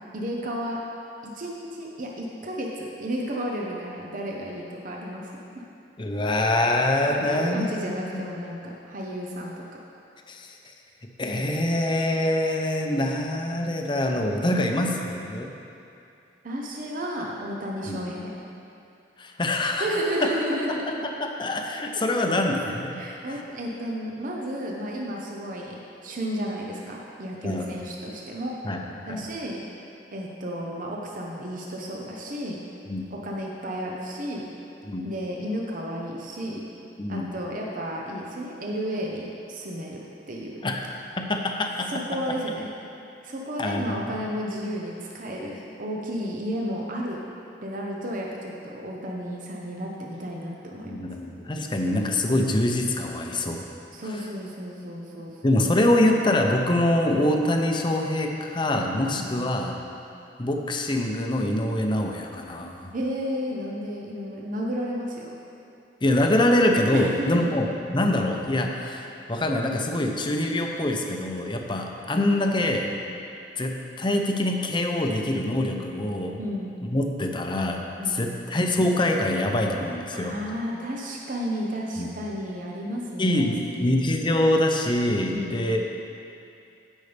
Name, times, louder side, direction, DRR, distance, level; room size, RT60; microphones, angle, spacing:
voice 1, 0.1-0.8 1.3-5.6 7.1-9.5 16.4-18.3 19.8-21.0 22.9-28.5 29.0-29.6 30.1-32.6 33.1-34.5 35.0-36.6 37.1-40.6 41.9-42.7 43.2-47.2 47.6-51.0 53.9-55.6 59.1-59.3 62.9-65.4 66.9-67.5 76.4-76.7 78.0-78.2 80.1-83.5 85.3-85.6, equal, 50° right, -2 dB, 0.9 m, -32 dB
voice 2, 6.0-8.2 10.3-10.5 11.2-15.5 17.9-18.0 19.2-19.9 20.7-23.0 27.4-27.7 28.6-29.2 32.9-33.0 34.8-35.1 37.0-37.3 40.6-40.8 41.3-41.9 43.6-44.2 50.8-53.6 55.4-59.8 60.4-62.9 66.0-67.7 67.9-72.9 73.6-76.4 76.9-80.4 82.0-82.1 83.2-85.8, left 1 dB, 30° left, 2 dB, 0.7 m, -25 dB
16.0 x 5.5 x 3.4 m, 2.7 s
head